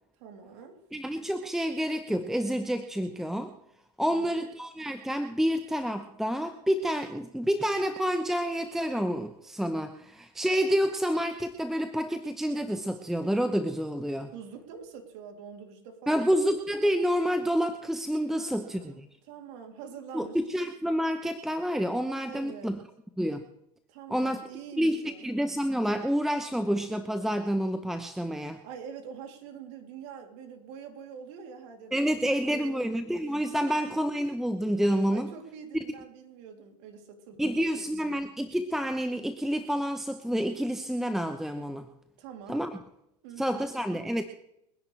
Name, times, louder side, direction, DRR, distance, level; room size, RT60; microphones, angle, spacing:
voice 1, 0.2-0.8 4.0-4.5 14.3-16.5 18.3-19.0 19.3-20.5 22.2-22.8 23.9-25.3 28.6-33.0 33.6-34.2 35.1-38.2 42.2-42.7 43.2-43.7, right 6 dB, 55° right, 3 dB, 3.3 m, -45 dB
voice 2, 0.9-3.6 4.0-14.3 16.1-19.1 20.1-22.8 23.2-23.4 24.1-24.4 24.8-28.6 31.9-35.3 37.4-41.9 42.5-42.7 43.4-44.2, equal, ahead, 9 dB, 0.9 m, -28 dB
29.0 x 10.5 x 3.4 m, 0.81 s
hypercardioid pair, 95°, 20 cm